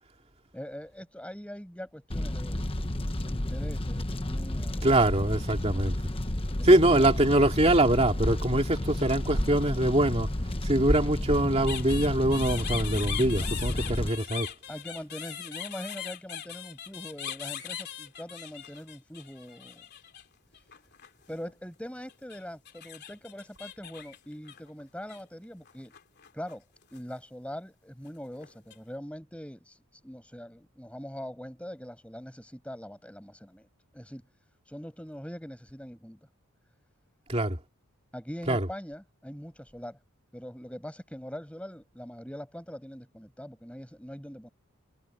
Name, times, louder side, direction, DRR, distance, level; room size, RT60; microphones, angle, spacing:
voice 1, 0.5-2.6 3.1-4.9 6.5-7.1 14.7-19.8 21.3-25.9 26.3-26.6 26.9-33.7 33.9-34.2 34.6-36.2 38.1-40.0 40.3-44.5, equal, 5° left, 6.9 m, -42 dB
Fire, 2.1-14.1, left 1 dB, 25° left, 1.1 m, -32 dB
voice 2, 4.8-6.0 6.6-10.3 10.6-14.5 37.3-37.6 38.5-38.7, right 1 dB, 25° right, 2.6 m, -23 dB
sound 1, 11.7-20.2 20.5-21.5 22.1-25.2 25.6-26.5 26.8-27.2 28.1-28.8, left 9 dB, 45° left, 3.2 m, -40 dB
head